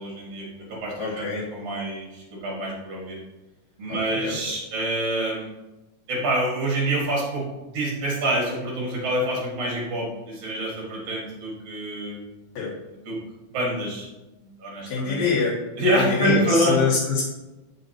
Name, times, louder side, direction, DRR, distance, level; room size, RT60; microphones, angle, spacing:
voice 1, 0.0-3.2 3.8-5.5 6.1-12.2 12.9-13.2 13.5-14.1 14.4-15.2 15.8-16.8, right 1 dB, 60° right, -3 dB, 2.9 m, -26 dB
voice 2, 1.0-1.4 3.9-4.3 12.5-12.7 14.9-15.6 15.9-17.2, left 4 dB, 70° left, -8 dB, 3.4 m, -25 dB
6.8 x 6.3 x 2.9 m, 1.0 s
omnidirectional pair, 3.3 m